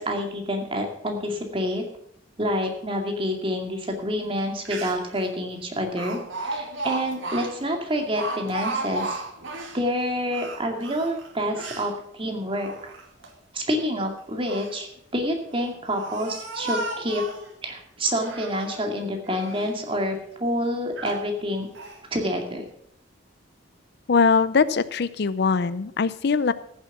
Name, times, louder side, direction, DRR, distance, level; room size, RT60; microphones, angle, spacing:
voice 1, 0.0-1.8 2.4-9.2 9.7-12.9 13.5-17.2 17.6-21.7 22.1-22.6, equal, 30° right, 3 dB, 2.2 m, -28 dB
Speech, 4.4-4.5 4.7-5.2 6.0-9.8 10.3-11.9 12.5-13.3 14.2-14.8 15.5-17.5 18.0-18.9 19.2-19.8 20.3-20.4 21.0-21.3 21.8-22.0, right 2 dB, 85° right, 2.2 m, -34 dB
voice 2, 24.1-26.5, left 5 dB, 60° left, 16 dB, 0.5 m, -21 dB
14.5 x 7.4 x 6.1 m, 0.70 s
head